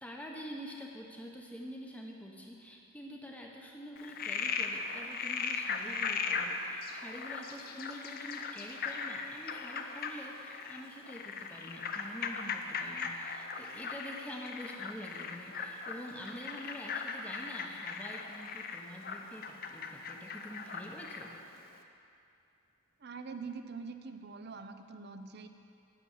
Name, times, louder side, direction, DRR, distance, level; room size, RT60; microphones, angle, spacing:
voice 1, 0.0-21.3, equal, 5° left, 0 dB, 0.9 m, -46 dB
Frog, 4.0-21.4, left 5 dB, 40° left, 0.6 m, -38 dB
voice 2, 23.0-25.5, right 4 dB, 50° right, 8 dB, 0.6 m, -44 dB
9.9 x 7.0 x 8.5 m, 2.6 s
head